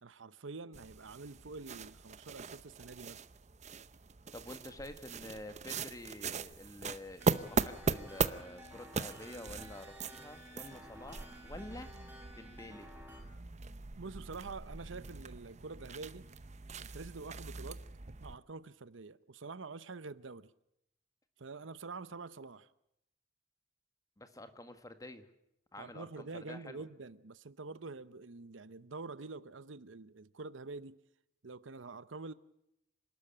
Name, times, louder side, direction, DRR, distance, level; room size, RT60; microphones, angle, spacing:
voice 1, 0.0-3.2 14.0-16.2 16.8-17.8 18.2-20.5 21.4-22.7 25.8-31.0 31.4-32.3, right 3 dB, 90° right, 0.8 m, -46 dB
sound 1, 0.7-18.4, right 4 dB, 40° right, 0.7 m, -40 dB
voice 2, 4.3-11.9 12.4-12.9 24.2-25.3 25.7-26.8, left 1 dB, 20° left, 1.6 m, -48 dB
sound 2, 7.2-13.2, equal, 10° right, 6.1 m, -53 dB
27.0 x 12.5 x 8.8 m
head